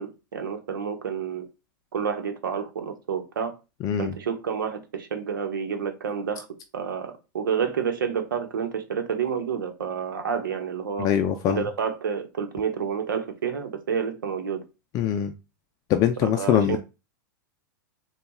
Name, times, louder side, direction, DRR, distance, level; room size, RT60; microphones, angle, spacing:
voice 1, 0.0-1.5 1.9-3.5 4.0-6.5 6.7-11.1 11.5-14.6 16.2-16.8, right 7 dB, 90° right, 0.9 m, -29 dB
voice 2, 3.8-4.1 11.0-11.6 14.9-15.3 15.9-16.8, left 10 dB, 35° left, 0.4 m, -23 dB
3.9 x 2.3 x 3.5 m
hypercardioid pair, 125°, 11 cm